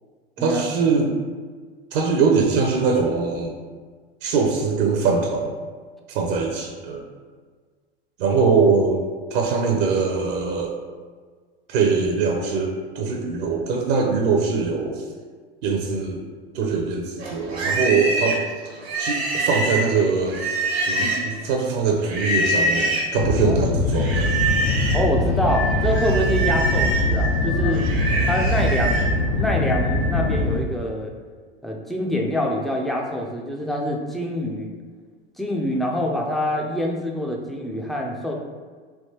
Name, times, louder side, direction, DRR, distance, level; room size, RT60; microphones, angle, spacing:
voice 1, 0.4-1.1 1.9-3.5 4.2-5.5 6.1-7.0 8.2-9.0 9.3-10.8 11.7-15.0 15.6-16.2 16.5-18.4 19.0-20.4 20.8-24.3, right 5 dB, 60° right, 1 dB, 0.6 m, -22 dB
Livestock farm animals working animals, 17.2-21.4 22.0-23.1 23.9-25.1 25.4-29.1, right 2 dB, 85° right, 1.0 m, -25 dB
sound 1, 23.2-30.6, left 1 dB, 80° left, 0.5 m, -22 dB
voice 2, 24.9-27.9 28.3-29.0 29.4-31.1 31.6-34.7 35.4-38.3, left 1 dB, ahead, -1 dB, 0.3 m, -25 dB
sound 2, 25.5-30.4, left 2 dB, 55° left, 0.9 m, -33 dB
3.4 x 2.7 x 2.8 m, 1.5 s
hypercardioid pair, 90°, 30 cm